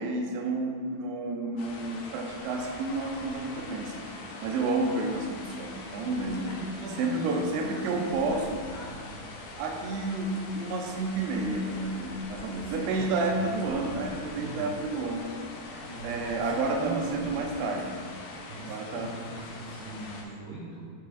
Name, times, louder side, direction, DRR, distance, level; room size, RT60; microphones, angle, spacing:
voice 1, 0.0-4.1 4.4-6.5 7.0-8.6 9.6-15.3 16.0-18.0 18.5-19.2, right 3 dB, 85° right, 2 dB, 2.8 m, -30 dB
sound 1, 1.6-20.2, left 2 dB, 75° left, 2.5 m, -43 dB
voice 2, 6.2-9.2 12.6-14.8 15.8-17.4 18.4-20.9, right 2 dB, 50° right, -12 dB, 1.6 m, -41 dB
12.0 x 4.6 x 2.5 m, 2.2 s
omnidirectional pair, 4.7 m